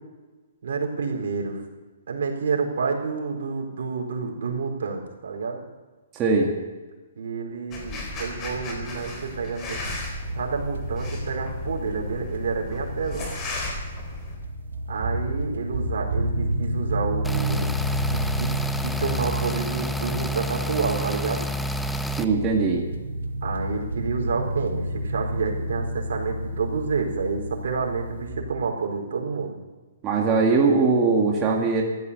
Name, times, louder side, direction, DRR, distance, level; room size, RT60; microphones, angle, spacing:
voice 1, 0.6-1.6 2.1-5.6 7.2-9.8 10.3-13.4 14.9-17.7 18.1-18.5 18.8-21.5 23.4-29.6, right 5 dB, 70° right, 0 dB, 4.2 m, -29 dB
voice 2, 6.1-6.5 22.2-22.8 30.0-31.8, right 4 dB, 20° right, -1 dB, 2.1 m, -20 dB
sound 1, 7.7-14.4, left 2 dB, 25° left, 4.1 m, -36 dB
sound 2, 9.9-28.3, equal, 90° right, 2.2 m, -31 dB
sound 3, 17.2-22.2, equal, ahead, 0.6 m, -29 dB
15.0 x 12.5 x 6.8 m, 1.3 s
hypercardioid pair, 150°, 0 cm